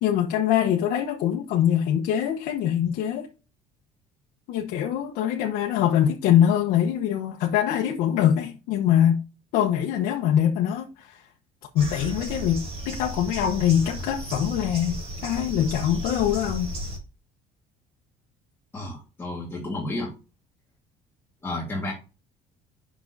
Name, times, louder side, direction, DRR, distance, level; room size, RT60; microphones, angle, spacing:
voice 1, 0.0-3.3 4.5-9.2 9.5-11.2 11.7-16.7, left 10 dB, 75° left, 1.0 m, -23 dB
sound 1, 11.8-17.0, equal, 40° right, 2.8 m, -34 dB
voice 2, 18.7-20.1 21.4-21.9, left 2 dB, 15° left, 1.7 m, -31 dB
8.5 x 6.0 x 2.7 m
cardioid pair, 135°, 15 cm